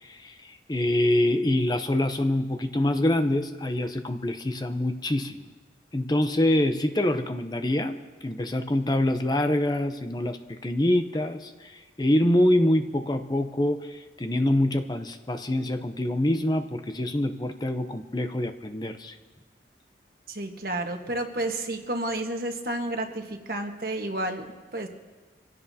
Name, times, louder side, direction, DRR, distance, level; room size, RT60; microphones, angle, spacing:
voice 1, 0.0-5.4 5.9-19.2, left 1 dB, 25° left, 7 dB, 0.6 m, -25 dB
voice 2, 20.3-24.5 24.7-24.9, right 1 dB, 55° right, 4 dB, 1.4 m, -31 dB
25.5 x 16.0 x 2.8 m, 1.3 s
head